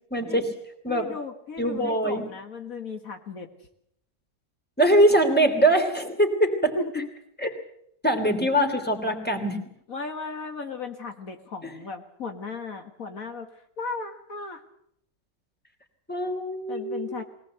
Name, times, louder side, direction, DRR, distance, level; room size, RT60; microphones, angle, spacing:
voice 1, 0.1-0.5 0.8-1.1 1.6-2.3 4.8-6.8 7.4-7.5 8.0-9.6 11.6-11.7 16.1-17.2, right 1 dB, 5° left, 5 dB, 3.0 m, -22 dB
voice 2, 0.9-3.5 6.8-7.1 8.2-8.4 9.9-13.5 13.8-14.6 16.7-17.2, left 4 dB, 65° left, 5 dB, 2.0 m, -35 dB
21.5 x 18.5 x 7.9 m, 0.73 s
omnidirectional pair, 1.6 m